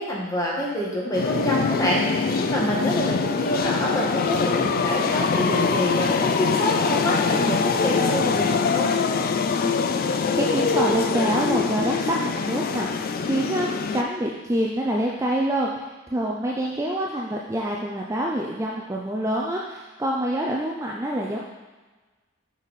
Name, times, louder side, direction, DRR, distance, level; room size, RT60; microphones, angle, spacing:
voice 1, 0.0-8.9, equal, 15° left, -4 dB, 1.4 m, -27 dB
sound 1, 1.1-14.0, left 5 dB, 45° left, 0.4 m, -23 dB
voice 2, 9.6-21.4, right 1 dB, 15° right, -2 dB, 0.5 m, -26 dB
6.4 x 5.3 x 4.1 m, 1.3 s
head